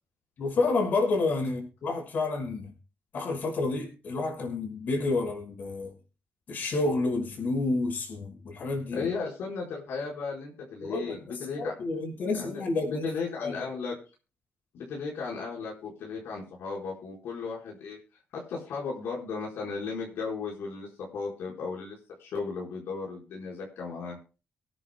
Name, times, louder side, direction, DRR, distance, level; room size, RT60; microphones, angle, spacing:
voice 1, 0.4-2.7 3.1-5.9 6.5-9.1 10.8-13.1 13.4-13.6, left 3 dB, 50° left, 1 dB, 5.7 m, -29 dB
voice 2, 8.9-11.7 12.3-13.9 14.7-18.0 18.3-24.2, left 4 dB, 80° left, -3 dB, 4.6 m, -35 dB
24.5 x 9.9 x 2.2 m, 0.34 s
cardioid pair, 160°, 4 cm